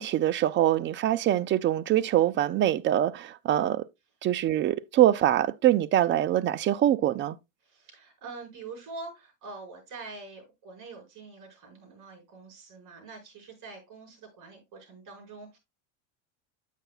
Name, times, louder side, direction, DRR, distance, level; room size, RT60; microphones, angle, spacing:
voice 1, 0.0-3.8 4.2-7.4, right 12 dB, 30° right, 0.4 m, -24 dB
voice 2, 7.6-15.6, right 3 dB, 45° right, 5.6 m, -45 dB
8.8 x 8.3 x 2.3 m
supercardioid pair, 120°, 43 cm